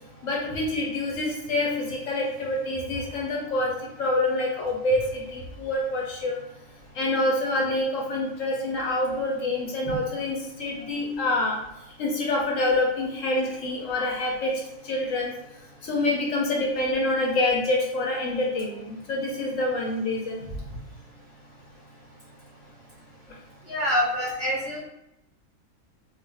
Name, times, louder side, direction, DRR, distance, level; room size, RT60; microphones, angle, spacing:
voice 1, 0.2-6.4 6.9-11.6 12.0-15.3 15.8-20.4, left 2 dB, 65° left, -1 dB, 0.9 m, -26 dB
voice 2, 23.7-24.8, equal, 20° left, -9 dB, 0.9 m, -25 dB
2.4 x 2.3 x 3.3 m, 0.85 s
omnidirectional pair, 1.6 m